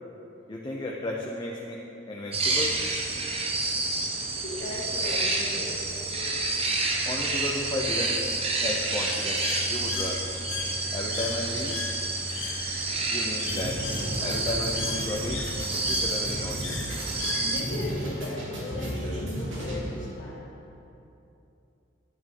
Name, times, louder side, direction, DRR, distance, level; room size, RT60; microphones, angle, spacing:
voice 1, 0.5-1.8 2.1-2.8 7.1-8.2 8.6-10.2 10.9-11.8 13.1-13.8 14.2-15.4 15.9-16.8, left 1 dB, 25° left, -2 dB, 0.7 m, -33 dB
sound 1, 2.3-17.6, right 2 dB, 30° right, 1.0 m, -29 dB
voice 2, 4.4-6.0 17.4-20.8, left 2 dB, 70° left, -3 dB, 1.8 m, -37 dB
Bird, 8.9-17.9, left 6 dB, 85° left, 0.8 m, -38 dB
sound 2, 13.5-20.1, right 1 dB, 80° right, 2.4 m, -34 dB
10.0 x 9.7 x 3.9 m, 2.8 s
head